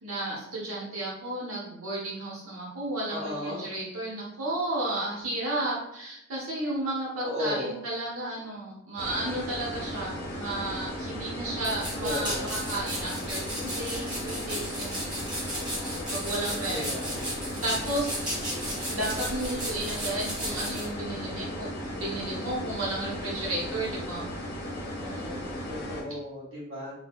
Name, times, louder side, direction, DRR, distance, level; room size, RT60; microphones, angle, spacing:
voice 1, 0.0-16.9 17.6-18.1 18.9-24.3 25.0-25.5, right 1 dB, 90° right, -5 dB, 1.2 m, -33 dB
voice 2, 3.1-3.7 7.2-7.8 12.0-12.4 16.6-17.2 25.7-26.9, left 1 dB, 65° right, -8 dB, 1.0 m, -34 dB
sound 1, 9.0-26.0, equal, 50° left, 0.7 m, -36 dB
sound 2, 11.6-20.9, equal, 20° right, 1.1 m, -35 dB
2.6 x 2.4 x 3.6 m, 0.80 s
head